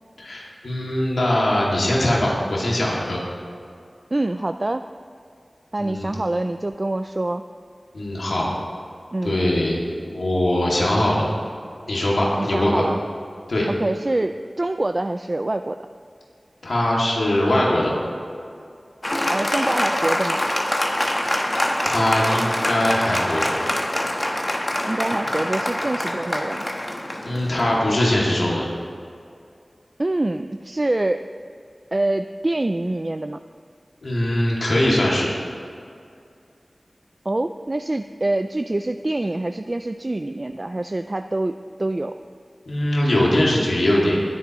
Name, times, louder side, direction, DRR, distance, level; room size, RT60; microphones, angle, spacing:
voice 1, 0.2-3.2 5.8-6.1 7.9-8.5 9.2-9.8 10.1-11.3 11.9-12.8 13.5-13.7 16.6-17.9 21.8-23.6 27.2-28.7 34.0-35.3 42.7-44.2, left 1 dB, 90° left, -4 dB, 2.4 m, -21 dB
voice 2, 4.1-4.8 5.7-7.4 9.1-9.4 12.4-13.0 13.7-15.8 19.3-20.4 24.8-26.7 30.0-31.2 31.9-33.4 37.3-41.5 41.8-42.2, right 2 dB, 45° right, 8 dB, 0.4 m, -25 dB
Applause, 19.0-28.0, left 1 dB, 35° left, 1.3 m, -25 dB
21.0 x 9.6 x 3.1 m, 2.3 s
wide cardioid pair, 40°, 0 cm